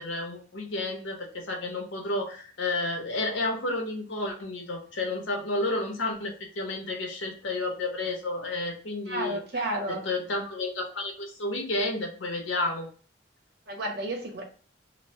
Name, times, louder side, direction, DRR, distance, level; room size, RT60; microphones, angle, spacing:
voice 1, 0.0-12.9, left 2 dB, 80° left, 1 dB, 1.0 m, -31 dB
voice 2, 9.1-10.0 13.7-14.4, right 1 dB, 55° right, 2 dB, 0.9 m, -31 dB
3.1 x 2.1 x 4.2 m, 0.41 s
head